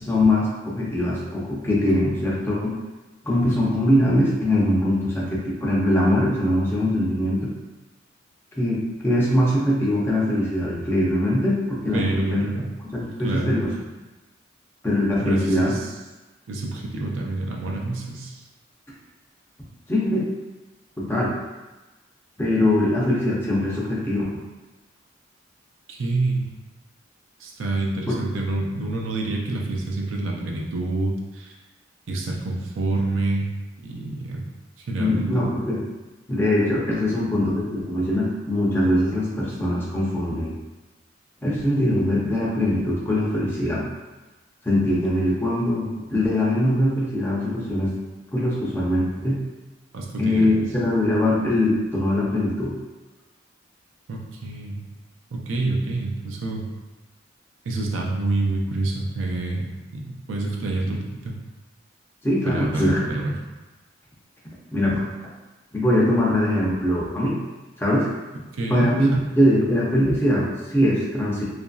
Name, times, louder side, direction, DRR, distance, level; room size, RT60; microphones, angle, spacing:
voice 1, 0.0-2.8 3.2-7.5 8.6-12.5 12.9-13.7 14.8-15.7 19.9-20.2 21.0-21.3 22.4-24.2 28.1-28.2 35.0-35.8 36.3-40.5 41.4-43.9 44.6-47.9 48.3-49.4 50.2-52.7 62.2-63.0 64.7-65.1 65.7-67.4 67.8-68.1 68.7-69.1 69.4-71.4, left 1 dB, 10° left, -6 dB, 0.5 m, -22 dB
voice 2, 11.9-12.7 13.2-13.6 15.2-15.9 16.5-18.4 25.9-26.5 27.4-31.5 32.1-33.5 33.8-34.4 34.9-35.4 49.9-50.5 54.1-54.8 55.3-56.6 57.6-59.7 59.9-61.3 62.5-63.3 68.6-68.9, right 2 dB, 90° right, -1 dB, 0.5 m, -27 dB
2.9 x 2.5 x 2.3 m, 1.1 s
head